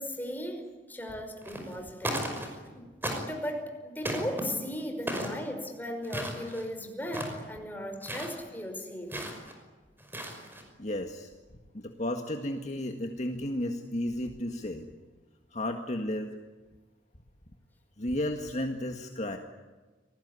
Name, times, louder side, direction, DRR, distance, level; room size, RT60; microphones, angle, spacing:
voice 1, 0.0-2.9 3.3-9.3, left 1 dB, 10° left, 4 dB, 5.3 m, -37 dB
sound 1, 1.4-1.8 2.0-2.7 3.0-3.5 4.0-4.4 5.1-5.4 6.0-6.7 7.0-7.4 8.0-8.3 9.1-9.5 10.0-10.6, right 1 dB, 10° right, 5.6 m, -35 dB
voice 2, 10.8-11.3 11.7-14.9 15.5-16.3 18.0-19.4, left 1 dB, 40° left, 4 dB, 1.8 m, -33 dB
28.0 x 20.0 x 9.8 m, 1.3 s
head